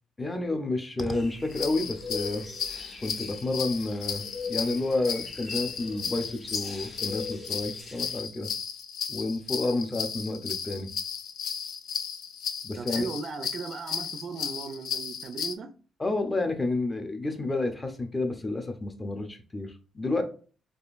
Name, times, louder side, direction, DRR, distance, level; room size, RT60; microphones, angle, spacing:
voice 1, 0.2-2.5 3.0-8.5 9.1-10.9 12.6-13.1 16.0-20.2, left 2 dB, 20° left, 0.6 m, -30 dB
sound 1, 1.1-8.2, left 4 dB, 40° left, 1.5 m, -42 dB
sound 2, 1.5-15.5, left 7 dB, 70° left, 0.3 m, -35 dB
voice 2, 12.7-15.7, right 4 dB, 55° right, 0.4 m, -37 dB
3.6 x 2.4 x 2.5 m
cardioid pair, 90°, 0 cm